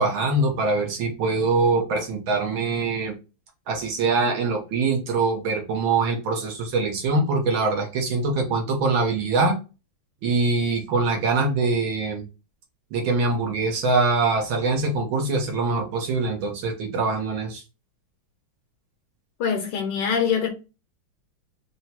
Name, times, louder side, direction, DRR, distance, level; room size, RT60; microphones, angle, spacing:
voice 1, 0.0-3.1 3.7-9.6 10.2-12.2 12.9-17.6, right 3 dB, 75° right, 1.9 m, -23 dB
voice 2, 19.4-20.5, left 7 dB, 65° left, 1.4 m, -24 dB
4.6 x 2.3 x 4.2 m
omnidirectional pair, 2.2 m